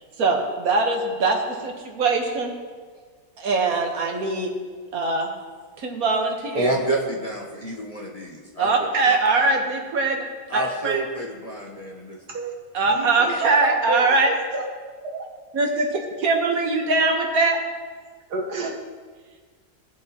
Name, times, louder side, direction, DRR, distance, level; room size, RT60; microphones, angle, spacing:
voice 1, 0.2-2.5 3.4-4.5 4.9-5.3 5.8-6.7 8.6-10.2 10.5-11.0 12.7-14.3 15.5-15.9 16.2-17.6, right 3 dB, 65° right, 2 dB, 1.6 m, -22 dB
voice 2, 6.5-8.7 9.1-9.2 10.5-12.2, right 2 dB, 25° left, -3 dB, 1.0 m, -28 dB
voice 3, 12.8-14.7 15.1-15.2 18.3-18.7, right 3 dB, 85° right, 1 dB, 1.7 m, -29 dB
16.0 x 7.1 x 2.9 m, 1.5 s
omnidirectional pair, 1.7 m